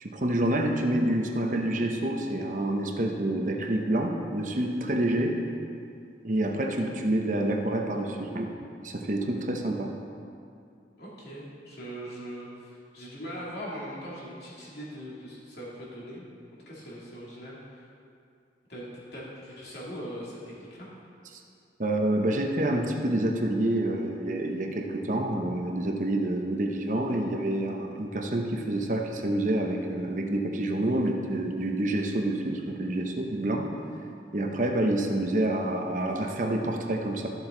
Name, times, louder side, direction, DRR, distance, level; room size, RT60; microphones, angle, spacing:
voice 1, 0.0-5.4 6.2-8.5 8.8-9.9 21.3-21.4 21.8-33.7 34.3-37.3, right 1 dB, 45° right, 2 dB, 0.8 m, -28 dB
voice 2, 11.0-17.9 18.7-20.9, equal, 65° left, -6 dB, 2.6 m, -41 dB
13.0 x 7.3 x 3.9 m, 2.5 s
head